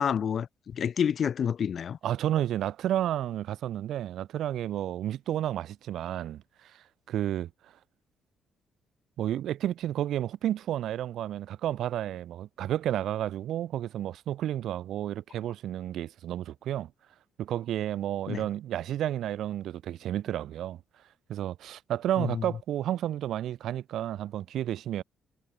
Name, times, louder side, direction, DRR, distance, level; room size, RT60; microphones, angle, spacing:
voice 1, 0.0-2.0 18.3-18.4 22.2-22.4, left 8 dB, 55° left, 0.4 m, -28 dB
voice 2, 2.0-7.5 9.2-16.9 17.4-20.8 21.3-25.0, right 12 dB, 75° right, 0.5 m, -31 dB
cardioid pair, 90°, 0 cm